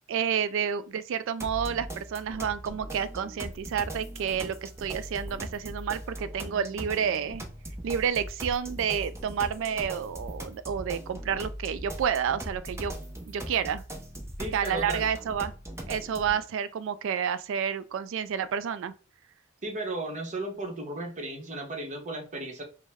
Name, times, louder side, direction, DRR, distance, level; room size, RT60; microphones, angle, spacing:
voice 1, 0.1-7.5 7.8-12.9 13.3-13.8 14.5-15.5 15.9-18.9, right 7 dB, 70° right, 0.3 m, -30 dB
sound 1, 1.4-16.4, right 1 dB, 15° right, 0.6 m, -40 dB
voice 2, 14.4-15.1 19.6-22.6, right 2 dB, 35° right, 1.0 m, -35 dB
5.2 x 2.1 x 3.5 m
head